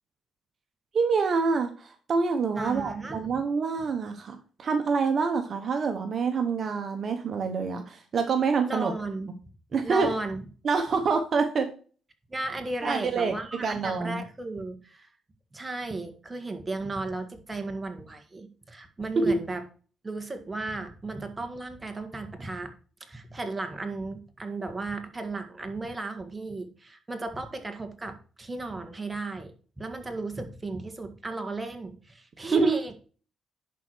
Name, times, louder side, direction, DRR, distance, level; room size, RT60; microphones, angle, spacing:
voice 1, 0.9-8.9 9.7-10.1 10.6-11.7 12.8-13.3 13.6-14.2 19.2-19.3 32.5-32.8, right 5 dB, 50° right, 6 dB, 1.1 m, -26 dB
voice 2, 2.5-3.3 8.7-9.3 9.8-10.4 12.3-15.1 15.5-19.6 20.0-22.7 23.0-32.9, right 2 dB, 20° right, 6 dB, 1.7 m, -35 dB
11.0 x 4.6 x 4.6 m, 0.39 s
cardioid pair, 90°, 0 cm